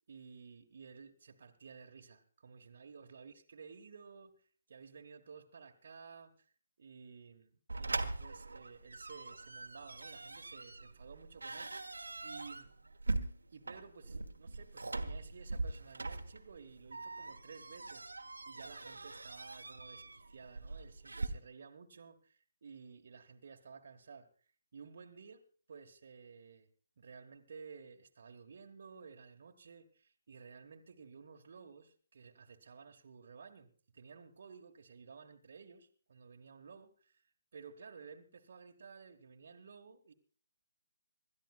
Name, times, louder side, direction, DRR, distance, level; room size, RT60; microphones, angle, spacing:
voice 1, 0.1-4.3 4.7-6.5 6.8-12.7 13.5-18.1 18.5-24.3 24.7-26.7 27.0-37.2 37.5-40.1, right 5 dB, 50° right, 3 dB, 1.3 m, -54 dB
sound 1, 7.7-21.3, right 3 dB, 70° right, 1.2 m, -42 dB
26.5 x 13.0 x 2.3 m, 0.42 s
figure-of-eight pair, 140°, 0 cm